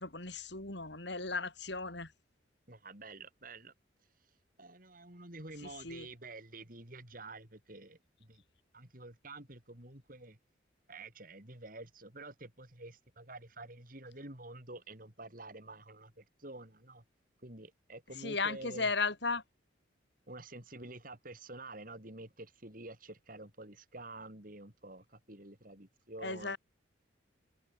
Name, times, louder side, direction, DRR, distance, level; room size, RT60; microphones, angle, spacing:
voice 1, 0.0-2.1 5.8-6.1 18.2-19.4 26.2-26.6, left 4 dB, 65° left, 5.0 m, -35 dB
voice 2, 2.7-3.7 4.6-8.4 8.7-10.4 10.9-17.0 17.4-18.9 20.3-26.6, right 2 dB, 45° right, 4.5 m, -49 dB
head